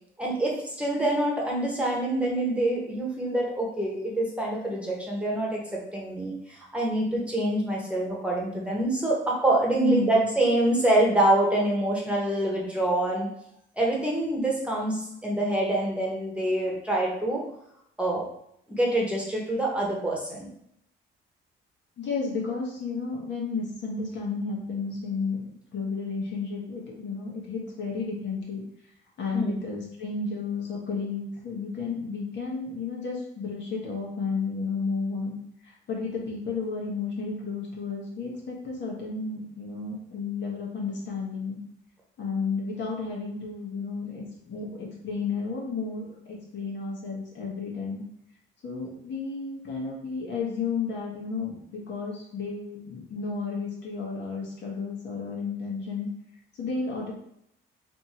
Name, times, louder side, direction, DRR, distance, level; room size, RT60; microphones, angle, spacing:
voice 1, 0.2-13.3 13.8-17.4 18.0-18.3 18.7-20.5 29.3-29.6, right 1 dB, 5° right, -3 dB, 1.2 m, -26 dB
voice 2, 9.8-10.2 22.0-28.6 29.2-35.4 35.6-41.6 42.2-48.0 48.6-56.1 56.6-57.1, left 4 dB, 65° left, -2 dB, 1.3 m, -32 dB
3.4 x 2.8 x 4.2 m, 0.73 s
cardioid pair, 90°, 20 cm